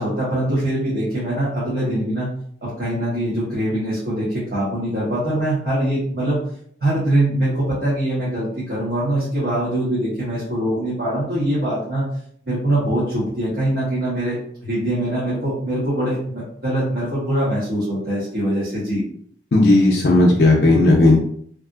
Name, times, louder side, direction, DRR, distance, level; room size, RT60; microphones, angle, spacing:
voice 1, 0.0-2.3 2.6-6.4 6.8-12.0 12.5-19.0, right 1 dB, 60° right, -9 dB, 1.1 m, -23 dB
voice 2, 19.5-21.2, left 2 dB, 60° left, -2 dB, 0.5 m, -14 dB
3.3 x 2.6 x 2.3 m, 0.64 s
head